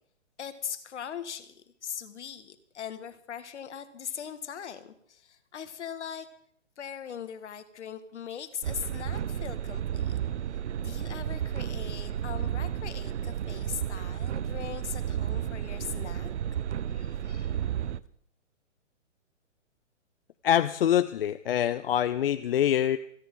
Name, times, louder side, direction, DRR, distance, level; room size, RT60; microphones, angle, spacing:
voice 1, 0.4-6.3 6.8-10.2 10.8-16.3 16.9-17.6, left 8 dB, 65° left, 10 dB, 1.9 m, -40 dB
sound 1, 8.6-18.0, right 9 dB, 65° right, 0.7 m, -32 dB
voice 2, 20.4-23.0, left 10 dB, 50° left, 12 dB, 0.7 m, -25 dB
28.0 x 10.0 x 3.8 m, 0.67 s
hypercardioid pair, 150°, 37 cm